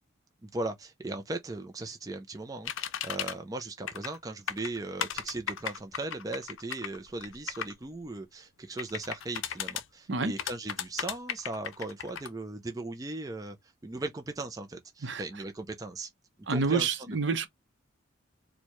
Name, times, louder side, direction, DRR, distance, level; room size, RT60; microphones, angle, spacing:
voice 1, 0.4-16.1 16.5-17.2, right 2 dB, 20° right, 0.4 m, -38 dB
sound 1, 2.7-3.3 3.9-4.2 4.5-7.7 8.8-9.8 10.4-12.3, left 9 dB, 80° left, 0.5 m, -35 dB
voice 2, 16.5-17.5, right 4 dB, 60° right, 0.7 m, -28 dB
4.4 x 2.2 x 3.0 m
head